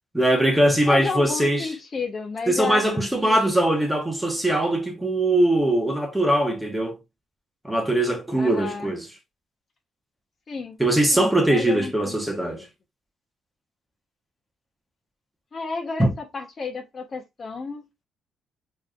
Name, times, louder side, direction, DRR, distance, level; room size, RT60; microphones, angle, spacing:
voice 1, 0.1-1.7 2.5-7.0 7.6-9.0 10.8-12.7 16.0-16.1, right 1 dB, 5° right, 1.2 m, -21 dB
voice 2, 0.9-2.9 3.2-3.5 8.4-9.0 10.5-10.8 11.1-12.7 15.5-16.1 16.3-17.8, left 4 dB, 40° left, 1.0 m, -32 dB
4.3 x 3.2 x 2.5 m
cardioid pair, 90°, 0 cm